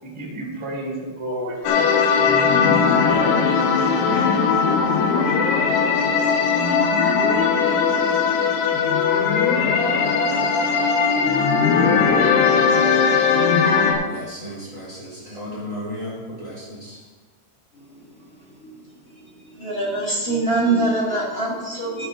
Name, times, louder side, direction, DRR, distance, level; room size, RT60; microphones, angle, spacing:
voice 1, 0.0-3.4 3.8-4.5 4.7-5.3, right 1 dB, 10° right, 1.3 m, -31 dB
sound 1, 1.6-13.9, left 5 dB, 80° left, 2.9 m, -19 dB
voice 2, 14.0-17.0, equal, 30° right, 1.4 m, -34 dB
voice 3, 19.5-22.1, right 2 dB, 15° left, 2.6 m, -23 dB
12.5 x 6.6 x 4.5 m
omnidirectional pair, 4.8 m